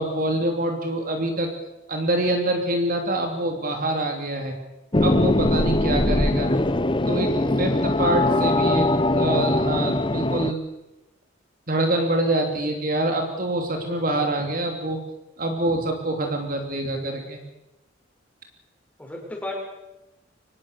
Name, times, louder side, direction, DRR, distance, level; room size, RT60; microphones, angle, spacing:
voice 1, 0.0-1.5 1.9-4.5 5.0-6.5 7.1-10.6 11.7-15.0 15.4-17.4, right 1 dB, 45° right, 4 dB, 3.0 m, -25 dB
sound 1, 4.9-10.5, left 1 dB, 25° left, 0.8 m, -21 dB
voice 2, 8.2-8.6 19.0-19.5, left 1 dB, 5° left, -1 dB, 6.0 m, -34 dB
25.0 x 20.0 x 6.9 m, 0.98 s
head